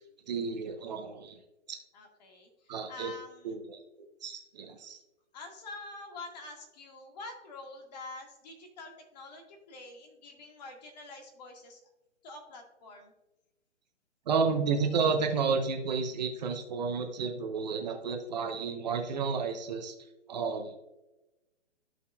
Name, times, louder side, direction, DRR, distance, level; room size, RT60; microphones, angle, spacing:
voice 1, 0.3-1.4 1.7-1.8 2.7-3.1 3.4-3.8 4.2-5.0 14.3-20.0 20.3-20.8, right 5 dB, 35° right, 4 dB, 0.9 m, -31 dB
voice 2, 1.9-3.6 5.3-11.8 12.2-13.1, left 2 dB, 35° left, 3 dB, 1.9 m, -46 dB
14.0 x 5.4 x 2.3 m, 0.99 s
hypercardioid pair, 145°, 36 cm